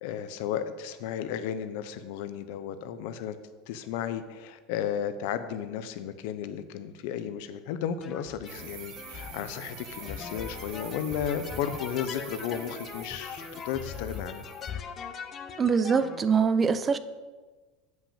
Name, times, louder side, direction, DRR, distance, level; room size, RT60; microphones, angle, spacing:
voice 1, 0.0-3.4 3.7-14.5, left 9 dB, 70° left, 0.7 m, -34 dB
sound 1, 8.0-16.2, left 7 dB, 35° left, 0.8 m, -41 dB
sound 2, 8.5-14.7, right 9 dB, 65° right, 1.1 m, -46 dB
voice 2, 15.6-17.0, right 6 dB, 25° right, 0.5 m, -23 dB
7.6 x 5.8 x 7.2 m
supercardioid pair, 120°, 0 cm